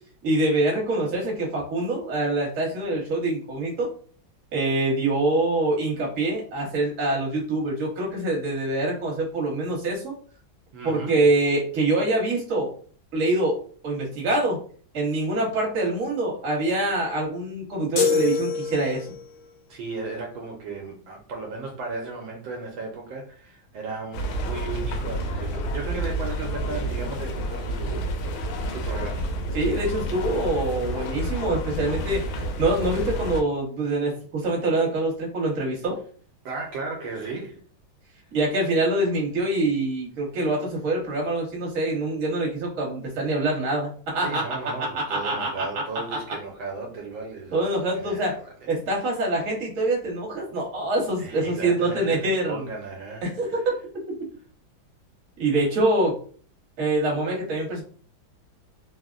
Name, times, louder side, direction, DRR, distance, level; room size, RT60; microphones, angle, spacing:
voice 1, 0.2-3.9 4.5-10.1 10.8-12.7 13.1-13.6 13.8-14.6 14.9-19.1 29.5-32.2 32.6-36.0 38.3-44.4 44.8-45.7 47.5-48.4 48.7-52.6 53.2-53.6 55.4-56.2 56.8-57.8, right 2 dB, 45° right, 1.3 m, -25 dB
voice 2, 10.7-11.2 19.7-29.3 36.4-37.6 44.2-47.7 47.9-48.5 51.2-53.5, right 3 dB, 80° right, 1.3 m, -35 dB
sound 1, 18.0-19.3, left 4 dB, 70° left, 0.8 m, -25 dB
sound 2, 24.1-33.4, right 1 dB, 85° left, 1.4 m, -29 dB
3.7 x 2.0 x 2.4 m
omnidirectional pair, 2.2 m